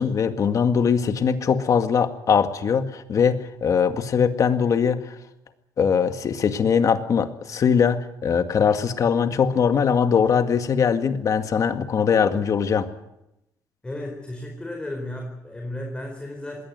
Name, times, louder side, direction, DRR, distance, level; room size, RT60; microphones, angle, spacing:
voice 1, 0.0-5.2 5.8-12.9, left 6 dB, 50° left, 8 dB, 2.0 m, -21 dB
voice 2, 13.8-16.6, left 1 dB, 15° left, 2 dB, 4.4 m, -34 dB
21.0 x 17.5 x 9.5 m, 0.89 s
cardioid pair, 110°, 7 cm